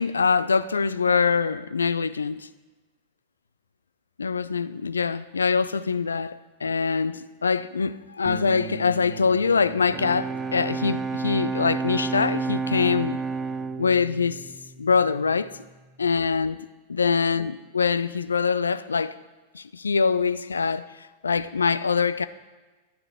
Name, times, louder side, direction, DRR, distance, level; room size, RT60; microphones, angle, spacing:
voice 1, 0.0-2.5 4.2-13.2 13.8-14.4 14.8-15.5 16.0-19.2 19.5-20.9 21.2-22.3, left 5 dB, 75° left, 0.3 m, -24 dB
sound 1, 8.2-14.5, right 6 dB, 30° right, 1.1 m, -43 dB
Bowed string instrument, 9.8-15.4, right 4 dB, 15° right, 0.3 m, -31 dB
12.5 x 8.4 x 3.6 m
figure-of-eight pair, 90°, 0 cm